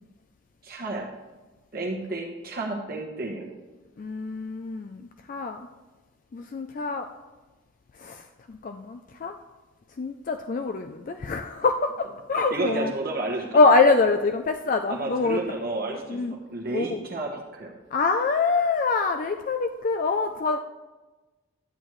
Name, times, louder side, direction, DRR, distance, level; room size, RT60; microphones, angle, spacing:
voice 1, 0.6-1.1 1.7-3.5 12.5-13.6 14.9-17.7, right 2 dB, 45° right, -1 dB, 1.2 m, -31 dB
voice 2, 4.0-5.6 6.3-7.1 8.0-9.4 10.0-12.9 13.5-15.4 16.1-16.4 16.7-17.0 17.9-20.6, left 3 dB, 40° left, 6 dB, 0.3 m, -24 dB
11.0 x 8.0 x 3.1 m, 1.2 s
head